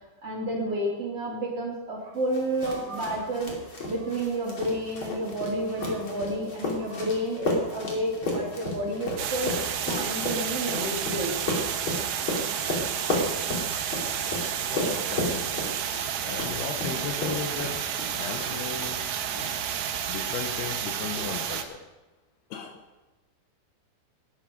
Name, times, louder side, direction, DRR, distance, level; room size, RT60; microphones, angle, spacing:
voice 1, 0.2-3.5 3.8-9.5 9.8-11.4, right 1 dB, 40° right, -2 dB, 2.8 m, -30 dB
sound 1, 2.3-19.1 19.3-20.0, left 2 dB, 35° left, 2.7 m, -33 dB
sound 2, 9.2-21.6, right 9 dB, 70° right, 2.2 m, -31 dB
voice 2, 14.6-15.5 16.2-17.8 18.2-19.2 20.1-21.8 22.5-22.8, left 7 dB, 75° left, 5 dB, 2.7 m, -36 dB
18.0 x 11.0 x 5.1 m, 1.1 s
omnidirectional pair, 5.0 m